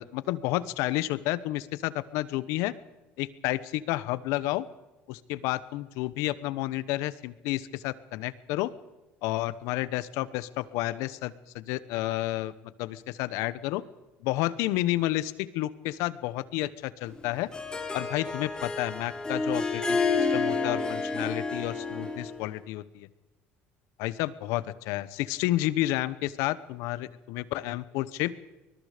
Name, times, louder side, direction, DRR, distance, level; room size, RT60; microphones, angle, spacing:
voice 1, 0.0-2.7 3.2-4.6 5.1-8.7 9.2-12.5 12.8-13.8 14.2-17.5 17.9-20.0 20.3-23.1 24.0-28.3, left 16 dB, 75° left, 17 dB, 1.0 m, -30 dB
Harp, 17.1-22.4, left 4 dB, 15° left, 3.7 m, -29 dB
24.0 x 21.5 x 5.1 m, 1.1 s
supercardioid pair, 100°, 5 cm